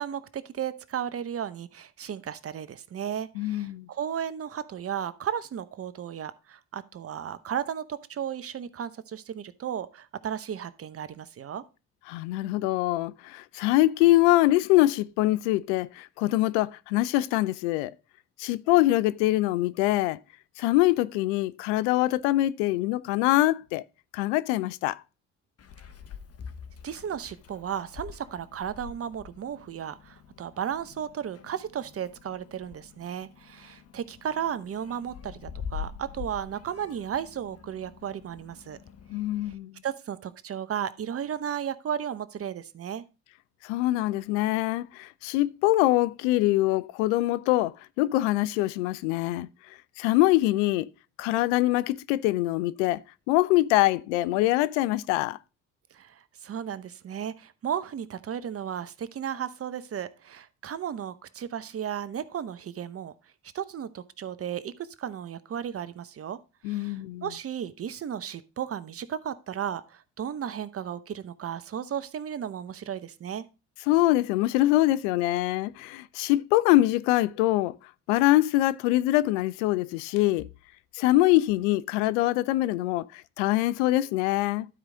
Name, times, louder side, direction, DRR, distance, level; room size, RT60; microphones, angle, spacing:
voice 1, 0.0-11.6 26.8-38.8 39.8-43.0 55.9-63.1 63.5-66.4 66.7-73.5, right 9 dB, 40° right, 0.8 m, -34 dB
voice 2, 3.4-3.9 12.1-17.9 18.4-20.2 20.6-23.8 24.1-25.0 39.1-39.7 43.6-49.5 50.0-50.9 51.2-53.0 53.3-55.4 66.6-67.3 73.9-77.8 78.1-80.5 80.9-84.7, left 16 dB, 75° left, 0.5 m, -24 dB
Meow, 25.6-39.5, left 7 dB, 40° left, 1.0 m, -45 dB
12.0 x 4.7 x 3.7 m
hypercardioid pair, 55°, 36 cm